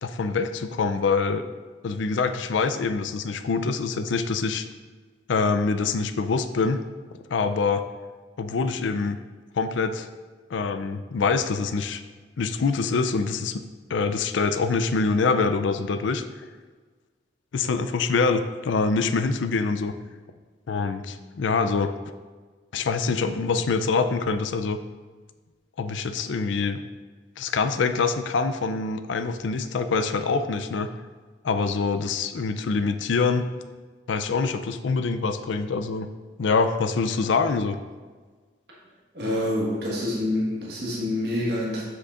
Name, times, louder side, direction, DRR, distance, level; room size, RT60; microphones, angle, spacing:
voice 1, 0.0-1.4 1.8-4.7 5.3-6.8 7.3-7.8 8.4-9.2 9.5-10.1 10.5-12.0 12.4-13.6 13.9-16.2 17.5-19.9 20.7-21.9 22.7-24.8 25.8-26.8 27.4-30.9 31.4-33.4 34.1-36.1 36.4-37.8, left 4 dB, 85° left, 9 dB, 0.4 m, -25 dB
voice 2, 39.1-41.8, left 1 dB, 60° right, -5 dB, 1.5 m, -27 dB
7.4 x 6.7 x 2.5 m, 1.4 s
head